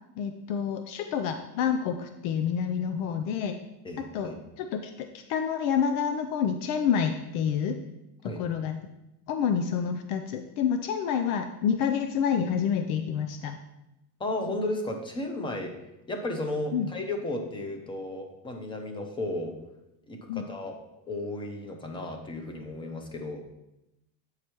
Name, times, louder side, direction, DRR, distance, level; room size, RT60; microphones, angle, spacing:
voice 1, 0.2-3.6 4.0-7.8 8.4-8.8 9.3-13.6 16.7-16.9 20.3-20.4, left 7 dB, 90° left, 7 dB, 0.7 m, -28 dB
voice 2, 3.8-4.4 8.2-8.4 14.2-15.7 16.1-19.5 20.1-20.8 21.1-23.4, left 2 dB, 10° left, 4 dB, 0.6 m, -34 dB
8.4 x 4.9 x 4.5 m, 0.90 s
cardioid pair, 180°, 42 cm